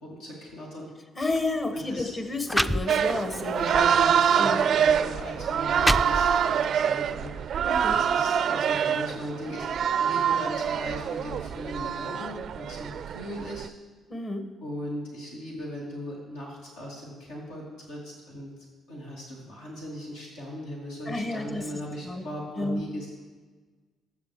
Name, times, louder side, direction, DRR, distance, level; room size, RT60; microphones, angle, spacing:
voice 1, 0.0-0.9 1.7-2.1 3.6-7.6 7.9-13.7 14.6-18.5 18.9-23.1, equal, 80° left, -5 dB, 2.6 m, -38 dB
voice 2, 1.1-3.6 4.4-4.6 7.6-8.0 14.1-14.5 21.1-21.6 22.0-22.3 22.6-22.8, left 2 dB, 40° left, 6 dB, 1.8 m, -30 dB
sound 1, 1.2-1.4 2.1-2.2 2.5-3.4 3.9-4.1 4.9-5.0 5.5-6.6, equal, 5° left, 0.4 m, -28 dB
sound 2, 2.9-13.7, right 8 dB, 60° right, 0.4 m, -25 dB
20.5 x 8.2 x 3.3 m, 1.4 s
hypercardioid pair, 45°, 0 cm